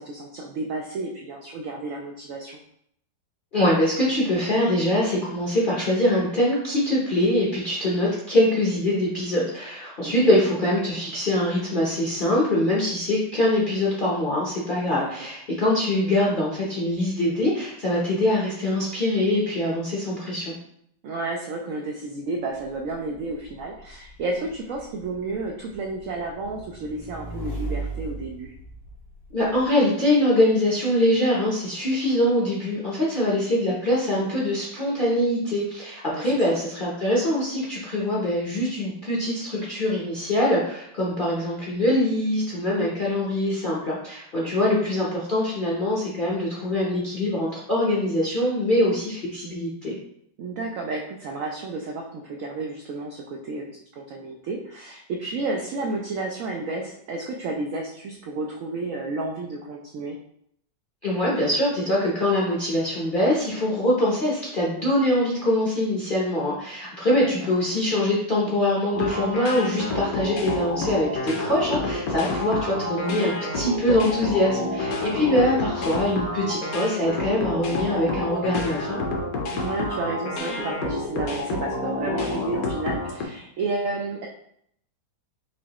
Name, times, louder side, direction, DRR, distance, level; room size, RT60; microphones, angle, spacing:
voice 1, 0.0-2.6 10.0-10.1 14.9-15.3 21.0-28.5 36.1-36.2 44.4-44.7 50.4-60.2 67.2-67.5 75.2-75.6 79.5-84.3, right 3 dB, 80° right, 0 dB, 0.7 m, -32 dB
voice 2, 3.5-20.6 29.3-50.0 61.0-79.0, left 1 dB, 45° left, -6 dB, 0.6 m, -23 dB
Motorcycle / Engine, 22.6-29.7, right 2 dB, 85° left, 2.2 m, -37 dB
Spacey VG Music Loop, 68.9-83.2, left 2 dB, 60° left, 1.0 m, -29 dB
4.7 x 3.0 x 2.9 m, 0.70 s
omnidirectional pair, 2.0 m